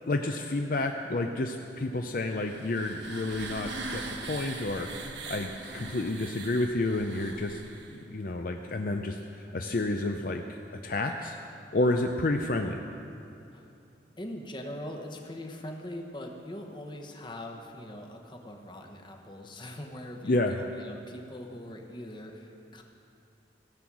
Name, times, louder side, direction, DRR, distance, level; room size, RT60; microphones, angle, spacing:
voice 1, 0.1-4.9 5.3-7.6 7.9-10.6 10.8-11.4 11.7-12.8 20.2-20.5, left 2 dB, 50° left, 4 dB, 0.5 m, -30 dB
sound 1, 2.2-8.0, right 3 dB, 85° right, 1.1 m, -41 dB
voice 2, 14.2-22.8, left 1 dB, 25° left, 3 dB, 1.0 m, -42 dB
16.5 x 7.9 x 6.1 m, 2.7 s
head